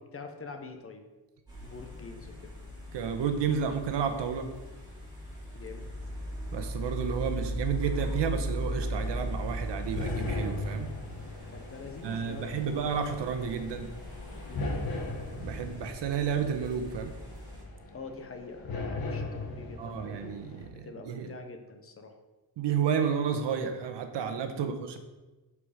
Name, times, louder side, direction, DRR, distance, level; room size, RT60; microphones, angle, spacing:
voice 1, 0.1-1.1 1.6-2.5 5.5-5.9 11.5-12.8 14.4-14.7 17.9-20.3 20.7-22.2 24.5-24.7, left 4 dB, 30° left, 5 dB, 1.0 m, -45 dB
sound 1, 1.5-17.6, equal, 10° right, 3.3 m, -39 dB
voice 2, 2.9-4.5 6.5-10.9 12.0-13.9 15.4-17.1 19.8-21.3 22.6-25.0, right 7 dB, 75° right, 7 dB, 1.1 m, -31 dB
sound 2, 8.7-20.7, left 2 dB, 55° left, 1.5 m, -39 dB
12.5 x 4.9 x 5.0 m, 1.2 s
wide cardioid pair, 175°, 42 cm